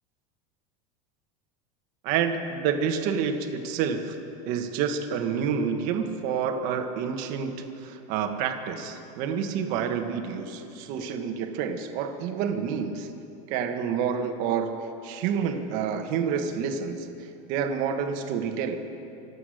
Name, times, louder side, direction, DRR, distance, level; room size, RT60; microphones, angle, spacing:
voice 1, 2.0-4.1 4.5-13.1 13.5-14.7 15.0-17.1 17.5-18.8, right 7 dB, 50° right, 5 dB, 1.5 m, -28 dB
25.5 x 8.5 x 6.5 m, 2.8 s
supercardioid pair, 155°, 18 cm